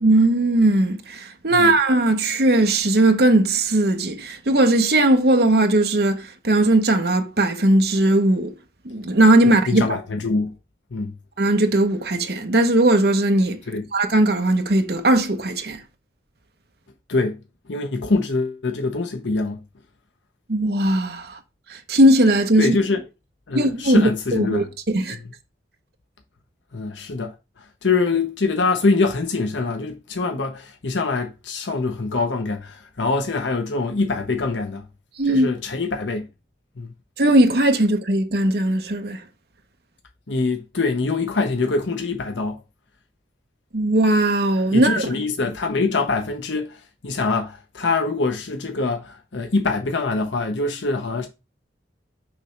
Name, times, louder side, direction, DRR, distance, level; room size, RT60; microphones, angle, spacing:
voice 1, 0.0-8.5 8.8-9.9 11.4-13.6 13.9-15.8 20.5-21.4 21.7-22.8 23.5-25.2 35.2-35.5 37.2-39.2 43.7-45.1, right 1 dB, 60° right, 1.0 m, -18 dB
voice 2, 9.7-10.5 10.9-11.1 13.7-13.8 17.1-17.4 17.7-19.6 22.6-23.0 23.5-24.6 26.7-27.3 27.8-34.8 35.3-36.3 36.8-36.9 40.3-42.6 44.7-46.8 47.0-51.3, left 3 dB, 85° left, 0.8 m, -24 dB
6.1 x 3.2 x 5.7 m
head